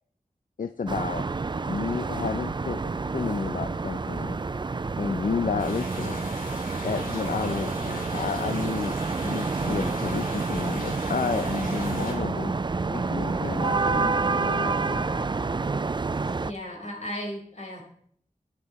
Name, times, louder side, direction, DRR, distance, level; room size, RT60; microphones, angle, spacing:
voice 1, 0.6-1.3 1.7-4.4 5.0-6.3 6.8-15.2, left 5 dB, 70° left, 10 dB, 0.6 m, -31 dB
sound 1, 0.9-16.5, right 4 dB, 35° right, 0.4 m, -28 dB
sound 2, 5.6-12.1, left 1 dB, 90° left, 4.1 m, -40 dB
voice 2, 16.4-17.8, left 1 dB, 55° left, -1 dB, 4.3 m, -35 dB
13.0 x 11.0 x 4.2 m, 0.63 s
wide cardioid pair, 55°, 14 cm